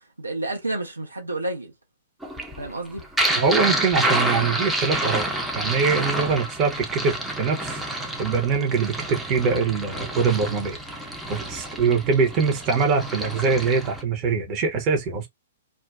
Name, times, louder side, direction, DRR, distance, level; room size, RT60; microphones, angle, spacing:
voice 1, 0.2-1.7 2.6-3.1, right 2 dB, 85° right, 0.9 m, -30 dB
sound 1, 2.2-14.0, right 1 dB, 5° right, 0.5 m, -28 dB
voice 2, 3.3-5.3 5.5-7.8 8.2-10.8 11.3-15.3, right 5 dB, 35° right, 0.8 m, -23 dB
2.4 x 2.2 x 2.4 m
figure-of-eight pair, 110°, 0 cm